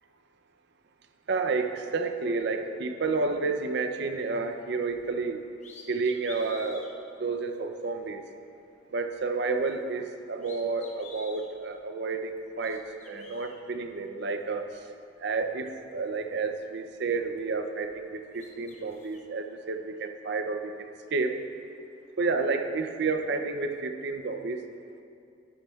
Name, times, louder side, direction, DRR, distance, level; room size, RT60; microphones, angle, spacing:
voice 1, 1.3-5.5 5.9-6.9 7.2-8.2 8.9-14.8 15.2-21.4 22.2-24.6, right 4 dB, 60° right, 7 dB, 0.6 m, -30 dB
sound 1, 4.9-5.1 5.6-6.9 7.5-7.6 9.4-10.1 10.4-11.5 12.4-13.5 14.7-14.8 15.2-16.9 17.2-18.0 18.3-19.2, left 4 dB, 35° left, 1.0 m, -51 dB
11.5 x 10.0 x 2.4 m, 2.6 s
head